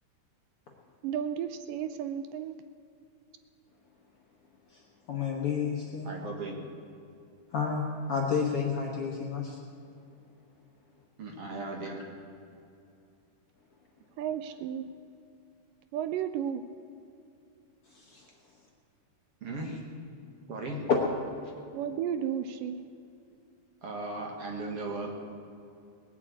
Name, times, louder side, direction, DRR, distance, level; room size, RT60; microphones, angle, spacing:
voice 1, 1.0-2.6 14.2-14.9 15.9-16.6 21.7-22.8, right 9 dB, 80° right, 10 dB, 2.1 m, -33 dB
voice 2, 5.1-6.1 7.5-7.8 8.1-9.6 17.9-18.2 19.6-19.7, left 6 dB, 55° left, -1 dB, 1.6 m, -31 dB
voice 3, 6.0-6.6 11.2-12.0 19.4-19.8 20.5-20.9 23.8-25.1, right 2 dB, 50° right, 1 dB, 2.2 m, -37 dB
19.5 x 7.5 x 8.5 m, 2.7 s
omnidirectional pair, 4.0 m